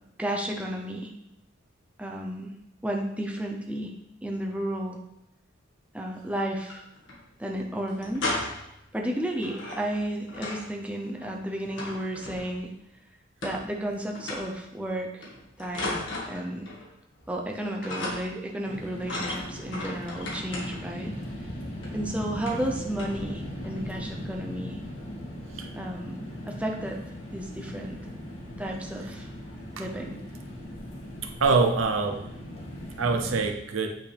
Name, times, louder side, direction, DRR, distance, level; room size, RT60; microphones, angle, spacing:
voice 1, 0.2-1.1 2.0-2.5 2.8-3.9 4.2-5.0 5.9-6.8 7.4-8.3 8.9-12.7 13.4-15.3 15.6-16.7 17.3-21.1 21.9-24.8 25.8-27.0 27.3-28.0 28.6-29.3 29.8-30.2, right 1 dB, 5° right, 0 dB, 0.7 m, -32 dB
sound 1, 6.5-7.2 7.5-7.6 7.9-8.8 9.4-10.7 11.0-12.7 13.4-13.9 14.1-14.6 15.2-16.9 17.2-17.5 17.8-18.5 19.0-21.0 21.8-22.0 22.4-22.7 23.0-23.2 23.6-23.9, left 2 dB, 65° left, 1.7 m, -36 dB
sound 2, 18.6-33.5, equal, 80° left, 2.2 m, -39 dB
voice 2, 31.4-32.3 33.0-34.0, right 4 dB, 80° right, 4 dB, 0.8 m, -24 dB
8.8 x 5.4 x 3.4 m, 0.85 s
head